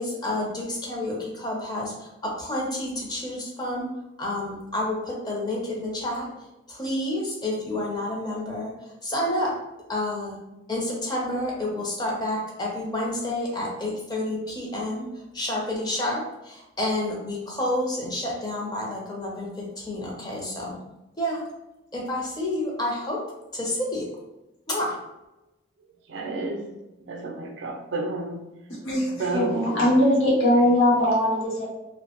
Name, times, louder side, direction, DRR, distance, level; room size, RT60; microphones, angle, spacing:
voice 1, 0.0-3.9 4.2-6.3 6.7-8.7 9.0-9.5 9.9-10.4 10.7-15.1 15.3-20.8 21.2-21.4 21.9-23.2 23.5-24.1 24.7-25.0, left 1 dB, 20° left, -3 dB, 0.5 m, -29 dB
voice 2, 26.1-28.5 29.2-29.8 30.5-30.8, right 3 dB, 70° right, 3 dB, 0.4 m, -31 dB
voice 3, 28.8-31.7, left 1 dB, 85° left, -5 dB, 0.9 m, -21 dB
2.6 x 2.0 x 2.8 m, 0.97 s
head